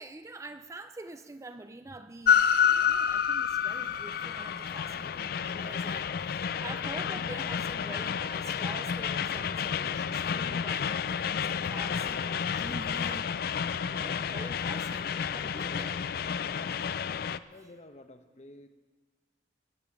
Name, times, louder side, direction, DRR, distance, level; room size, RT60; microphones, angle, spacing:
voice 1, 0.0-13.3 13.9-16.0, right 2 dB, 15° right, 10 dB, 0.4 m, -46 dB
Train, 2.3-17.4, left 7 dB, 55° left, 0.4 m, -30 dB
voice 2, 17.5-18.7, left 2 dB, 40° left, 7 dB, 0.9 m, -51 dB
19.0 x 7.1 x 7.2 m, 1.3 s
head